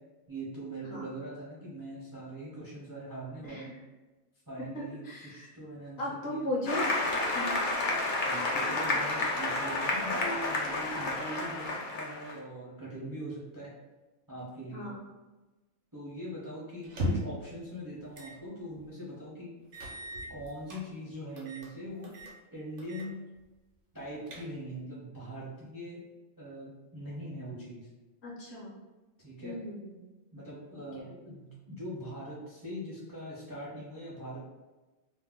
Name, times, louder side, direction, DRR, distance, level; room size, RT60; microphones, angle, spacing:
voice 1, 0.3-3.8 4.5-6.5 8.1-13.7 14.3-14.9 15.9-19.5 20.3-22.1 22.5-23.1 23.9-26.0 26.4-27.9 29.2-29.6 30.3-34.4, right 1 dB, 30° right, -7 dB, 0.4 m, -42 dB
voice 2, 5.0-5.5 6.0-7.7 14.7-15.0 28.2-28.7 29.4-30.0, left 1 dB, 60° left, -4 dB, 0.8 m, -37 dB
Applause, 6.7-12.3, left 2 dB, 90° left, 0.4 m, -30 dB
sound 1, 16.8-17.4 18.1-18.4 18.8-18.9 19.7-20.8 21.4-21.7 22.0-22.4 22.8-23.1 23.4-23.5 24.0-24.8, equal, 65° right, 0.8 m, -37 dB
2.6 x 2.1 x 3.5 m, 1.1 s
omnidirectional pair, 1.4 m